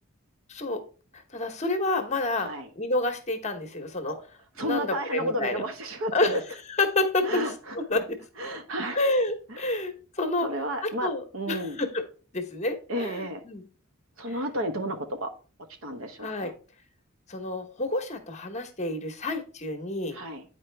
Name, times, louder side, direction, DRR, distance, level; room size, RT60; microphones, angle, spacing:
voice 1, 0.5-0.8 1.1-4.2 4.6-5.6 6.1-7.4 7.7-8.2 8.9-10.5 10.8-12.0 12.3-13.7 16.2-16.5 17.3-20.2, left 2 dB, 35° left, 7 dB, 1.1 m, -29 dB
voice 2, 2.4-2.7 4.6-6.4 7.2-8.0 8.4-9.0 9.5-9.6 10.4-11.8 12.9-13.4 14.2-15.3 15.8-16.5 20.1-20.4, right 1 dB, 85° right, 7 dB, 1.2 m, -32 dB
9.3 x 4.6 x 3.3 m, 0.38 s
head